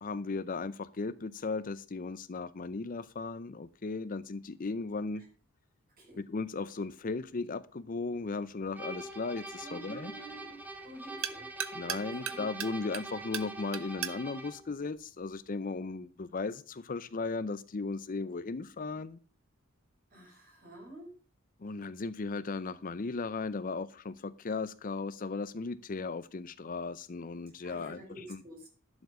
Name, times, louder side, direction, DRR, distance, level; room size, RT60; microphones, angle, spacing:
voice 1, 0.0-5.2 6.3-10.1 11.7-19.2 21.6-28.0 28.3-28.4, left 3 dB, 40° left, 15 dB, 0.5 m, -36 dB
sound 1, 8.2-15.8, right 10 dB, 70° right, 0.9 m, -43 dB
sound 2, 8.7-14.7, right 2 dB, 10° right, 1.2 m, -44 dB
voice 2, 9.6-10.6 10.8-11.5 12.2-12.4 20.1-21.1 27.6-28.7, right 1 dB, 40° right, 0 dB, 6.4 m, -48 dB
11.5 x 7.1 x 5.2 m, 0.37 s
head